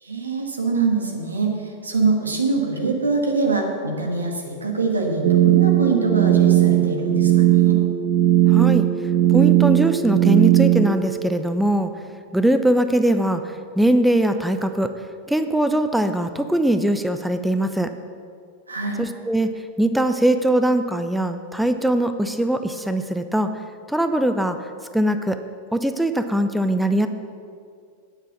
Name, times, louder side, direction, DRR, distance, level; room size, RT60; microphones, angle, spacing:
voice 1, 0.0-7.3 7.6-7.8 18.7-19.0, right 4 dB, 75° right, 2 dB, 1.6 m, -23 dB
sound 1, 5.2-10.9, right 14 dB, 40° right, 0.6 m, -17 dB
voice 2, 8.5-8.9 9.3-11.9 12.3-14.9 15.3-17.9 19.0-23.5 23.9-25.4 25.7-27.1, right 1 dB, ahead, 8 dB, 0.5 m, -21 dB
9.1 x 7.6 x 7.1 m, 2.3 s
figure-of-eight pair, 90°, 0 cm